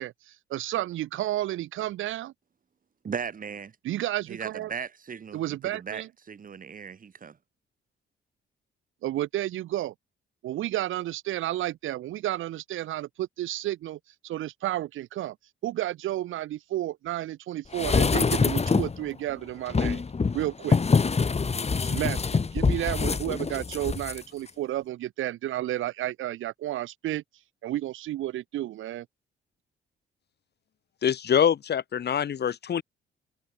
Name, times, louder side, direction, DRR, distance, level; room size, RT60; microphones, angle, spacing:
voice 1, 0.0-2.3 3.8-4.7 5.3-6.1 9.0-9.9 10.4-15.4 15.6-20.0 20.3-20.8 21.8-27.2 27.6-29.1, right 14 dB, 85° right, 4.1 m, -31 dB
voice 2, 3.0-3.7 4.3-7.4, right 6 dB, 45° right, 5.0 m, -37 dB
sound 1, 17.7-19.0 19.7-24.2 24.5-24.6, left 4 dB, 30° left, 4.8 m, -25 dB
voice 3, 31.0-32.8, left 8 dB, 55° left, 3.6 m, -24 dB
cardioid pair, 90°, 20 cm